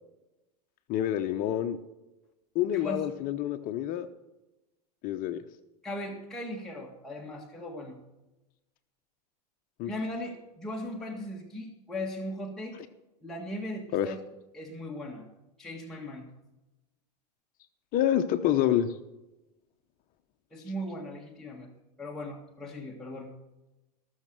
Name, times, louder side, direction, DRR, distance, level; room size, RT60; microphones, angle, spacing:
voice 1, 0.9-1.8 2.5-4.1 5.0-5.4 9.8-9.9 13.9-14.1 17.9-18.9, left 11 dB, 40° left, 8 dB, 0.9 m, -27 dB
voice 2, 5.8-8.0 9.8-12.8 13.2-14.2 14.5-15.3 15.6-16.3 20.5-21.7 22.0-23.3, left 1 dB, ahead, -3 dB, 1.8 m, -38 dB
18.5 x 6.6 x 6.1 m, 1.0 s
hypercardioid pair, 110°, 21 cm